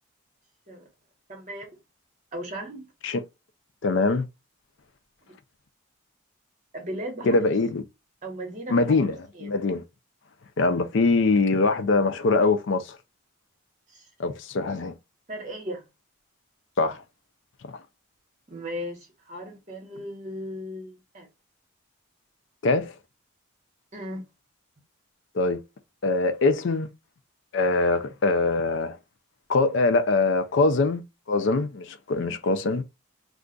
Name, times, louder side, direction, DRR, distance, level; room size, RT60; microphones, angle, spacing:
voice 1, 1.3-1.7 2.3-2.9 6.7-7.4 8.2-8.8 9.3-9.6 13.9-14.0 15.3-15.8 18.5-21.3 23.9-24.2 32.2-32.3, equal, 35° right, 1.0 m, -36 dB
voice 2, 3.8-4.3 7.2-7.8 8.7-9.2 9.4-9.8 10.6-13.0 14.2-14.9 16.8-17.0 17.7-17.8 22.6-22.9 25.3-25.6 26.0-26.9 27.5-29.0 29.5-31.0 31.3-32.8, left 3 dB, 60° left, 0.4 m, -23 dB
2.4 x 2.3 x 3.7 m
head